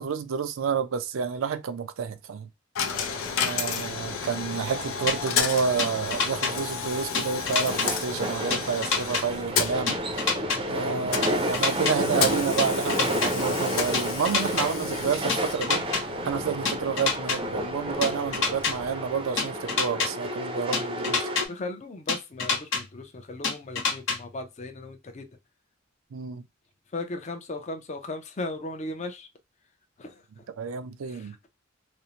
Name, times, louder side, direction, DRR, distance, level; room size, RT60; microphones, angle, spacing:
voice 1, 0.0-2.5 3.4-15.8 16.2-21.4 26.1-26.4 30.6-31.4, right 6 dB, 80° right, 0.4 m, -29 dB
Coin (dropping), 2.7-19.7, left 6 dB, 90° left, 0.5 m, -33 dB
sound 1, 2.9-21.5, equal, 25° right, 0.5 m, -32 dB
sound 2, 5.1-5.2 5.8-6.5 7.1-7.9 8.5-9.2 9.9-10.6 11.2-11.9 12.6-13.3 13.9-14.7 15.3-16.0 16.7-17.4 18.0-18.7 19.4-20.1 20.7-21.4 22.1-22.8 23.4-24.2, left 5 dB, 70° left, 1.1 m, -26 dB
voice 2, 21.5-25.3 26.9-29.3 30.0-30.2 31.1-31.5, left 2 dB, 35° left, 0.5 m, -37 dB
2.6 x 2.1 x 2.8 m
head